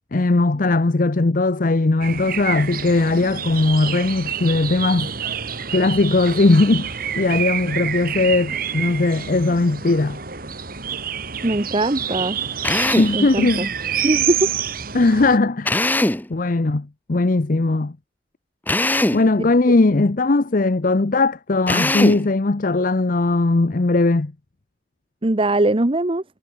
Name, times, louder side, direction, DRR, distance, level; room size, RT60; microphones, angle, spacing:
voice 1, 0.1-5.1 5.7-10.2 12.9-13.7 14.9-15.8 16.3-18.0 19.1-24.3, left 2 dB, 50° left, 0.7 m, -19 dB
sound 1, 2.0-15.4, right 8 dB, 55° right, 3.1 m, -28 dB
voice 2, 11.4-12.4 13.1-13.7 14.0-14.5 25.2-26.2, right 2 dB, 30° right, 1.1 m, -20 dB
Drill, 12.6-13.2 15.6-16.3 18.7-19.3 21.7-22.3, left 1 dB, 10° left, 0.9 m, -20 dB
head